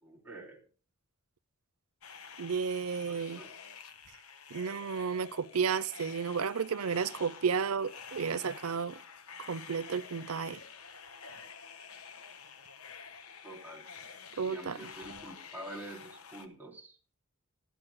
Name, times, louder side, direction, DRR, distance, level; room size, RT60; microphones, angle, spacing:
voice 1, 0.0-0.6 3.1-3.5 13.4-13.8 14.4-17.0, right 1 dB, 10° right, 3.4 m, -46 dB
sound 1, 2.0-16.5, left 6 dB, 85° left, 1.4 m, -49 dB
voice 2, 2.4-3.4 4.5-9.0 9.4-10.6 14.4-14.9, right 6 dB, 90° right, 0.7 m, -32 dB
19.5 x 12.5 x 2.2 m
head